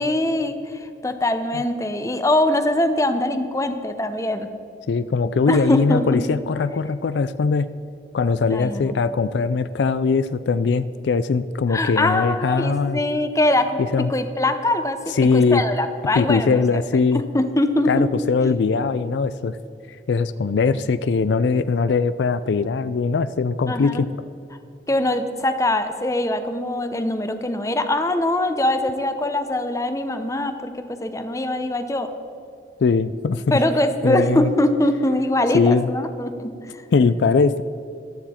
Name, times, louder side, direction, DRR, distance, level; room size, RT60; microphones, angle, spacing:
voice 1, 0.0-4.5 5.5-6.4 8.5-8.9 11.7-16.8 17.1-18.1 23.7-24.1 24.9-32.1 33.5-36.8, left 1 dB, 15° left, 9 dB, 0.7 m, -22 dB
voice 2, 4.9-7.7 8.1-13.0 13.9-14.1 15.2-15.6 16.2-17.2 17.9-19.6 20.1-24.1 32.8-33.6 34.0-34.5 35.5-35.9 36.9-37.6, left 4 dB, 75° left, 14 dB, 0.4 m, -20 dB
14.5 x 12.0 x 4.3 m, 2.7 s
head